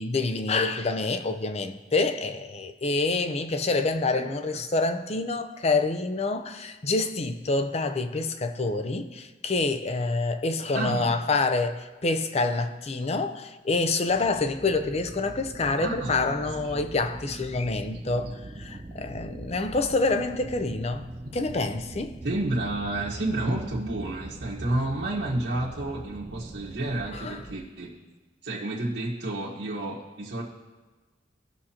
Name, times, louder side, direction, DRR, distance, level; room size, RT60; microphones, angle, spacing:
voice 1, 0.0-21.1 21.3-22.2 27.1-27.4, left 3 dB, 35° left, 0.6 m, -27 dB
voice 2, 10.7-11.1 15.8-16.4 16.6-16.7 21.2-21.4 22.2-28.0 28.4-30.4, right 1 dB, 85° right, 1.4 m, -30 dB
sound 1, 14.1-27.6, right 2 dB, 25° right, 0.5 m, -42 dB
18.5 x 6.3 x 2.9 m
head